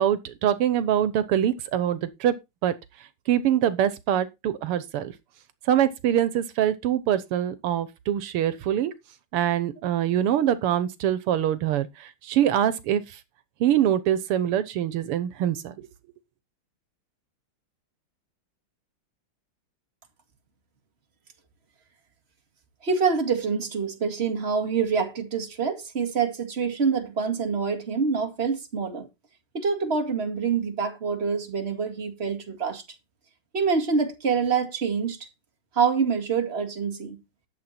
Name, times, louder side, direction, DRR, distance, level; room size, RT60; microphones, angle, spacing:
voice 1, 0.0-2.3 2.6-2.7 3.3-5.1 5.7-8.9 9.3-13.2 13.6-15.9, right 10 dB, 85° right, 1.9 m, -24 dB
voice 2, 22.8-29.1 29.5-32.8 33.5-35.3 35.7-37.2, right 5 dB, 30° right, 2.2 m, -26 dB
12.0 x 7.6 x 4.3 m
omnidirectional pair, 2.4 m